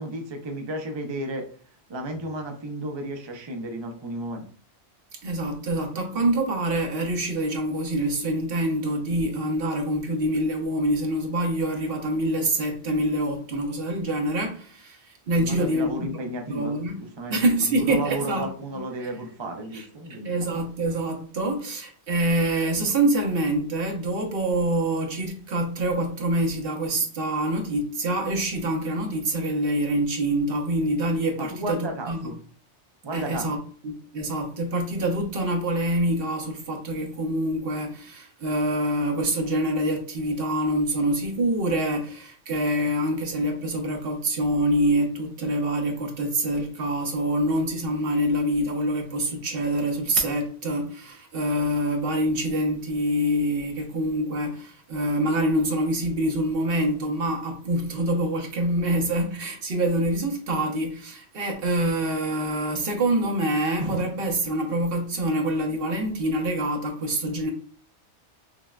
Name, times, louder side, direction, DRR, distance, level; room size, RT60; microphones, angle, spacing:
voice 1, 0.0-1.5 1.9-4.5 15.3-17.4 17.6-20.5 31.4-32.4 33.0-33.5, right 1 dB, 40° right, 0.4 m, -33 dB
voice 2, 5.2-15.0 15.3-16.2 16.5-19.1 19.7-32.3 33.1-33.6 33.8-67.5, right 1 dB, 60° right, 0.9 m, -26 dB
5.8 x 2.1 x 2.3 m
omnidirectional pair, 1.2 m